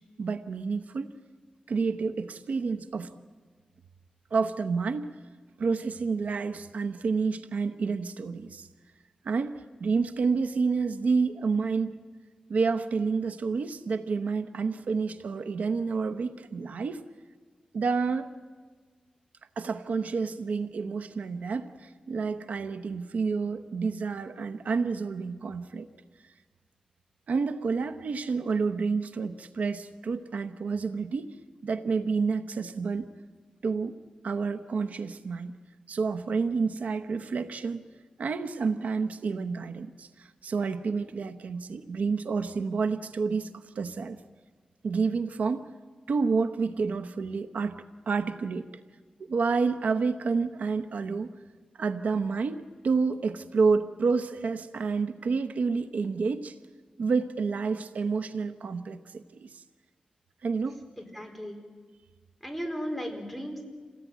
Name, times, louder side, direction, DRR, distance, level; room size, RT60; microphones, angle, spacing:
voice 1, 0.2-1.1 1.7-3.1 4.3-5.1 5.6-8.7 9.2-12.0 12.5-17.0 17.7-18.3 19.6-25.9 26.2-26.3 27.3-31.3 31.6-33.1 33.6-34.0 34.2-35.5 35.9-37.8 38.2-44.2 44.8-45.7 46.1-48.7 49.2-51.3 51.8-56.6 57.0-59.6 60.4-60.8, right 4 dB, 85° right, 9 dB, 0.9 m, -29 dB
voice 2, 61.0-61.6 62.4-63.6, equal, ahead, 3 dB, 4.3 m, -36 dB
28.0 x 18.0 x 9.3 m, 1.5 s
wide cardioid pair, 90°, 2 cm